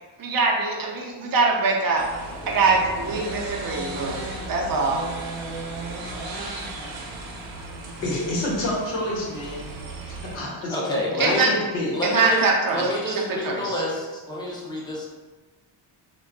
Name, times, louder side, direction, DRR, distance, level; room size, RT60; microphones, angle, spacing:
voice 1, 0.2-2.1 2.5-4.2 4.5-5.0 11.2-11.5 12.0-13.1 13.4-13.7, right 3 dB, 50° right, -1 dB, 0.6 m, -23 dB
sound 1, 2.0-10.4, right 2 dB, 85° right, 0.7 m, -35 dB
voice 2, 8.0-9.7 10.0-10.8 11.3-11.9, left 1 dB, 70° left, -4 dB, 1.0 m, -28 dB
voice 3, 10.7-11.5 11.9-15.1, equal, 10° left, -4 dB, 0.7 m, -28 dB
2.3 x 2.1 x 3.6 m, 1.2 s
cardioid pair, 95°, 45 cm